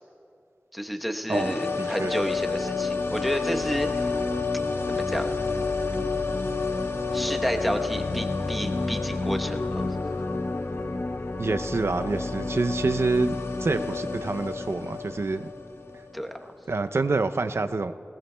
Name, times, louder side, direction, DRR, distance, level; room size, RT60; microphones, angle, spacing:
voice 1, 0.7-4.1 4.9-5.3 7.1-10.0 16.1-16.3, equal, ahead, 4 dB, 0.9 m, -30 dB
sound 1, 1.3-16.2 16.5-16.6, left 3 dB, 65° left, 0.8 m, -29 dB
voice 2, 1.3-2.2 11.4-15.5 15.9-16.0 16.7-17.9, right 3 dB, 75° right, 9 dB, 0.5 m, -27 dB
21.0 x 19.5 x 2.2 m, 2.5 s
wide cardioid pair, 50°, 4 cm